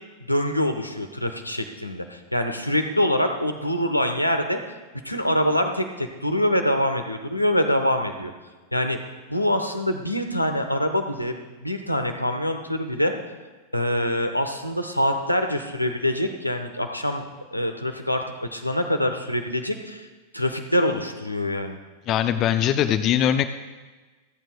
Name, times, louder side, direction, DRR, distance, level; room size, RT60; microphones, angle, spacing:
voice 1, 0.3-4.6 5.0-8.3 8.7-9.0 9.3-13.2 13.7-17.2 17.5-20.1 20.3-21.8, left 1 dB, 90° left, 5 dB, 1.1 m, -25 dB
voice 2, 22.1-23.4, left 10 dB, 35° left, 10 dB, 0.6 m, -21 dB
27.0 x 9.1 x 2.3 m, 1.3 s
figure-of-eight pair, 90°, 0 cm